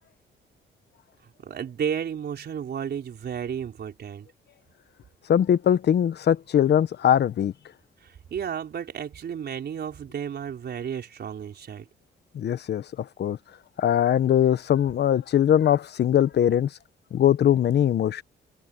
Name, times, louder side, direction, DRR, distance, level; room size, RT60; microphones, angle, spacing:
voice 1, 1.4-4.3 8.0-11.9, right 8 dB, 55° right, 4.4 m, -32 dB
voice 2, 5.3-7.5 12.3-12.8 13.2-13.4 13.8-16.7 17.1-18.2, left 10 dB, 60° left, 1.1 m, -21 dB
cardioid pair, 90°, 20 cm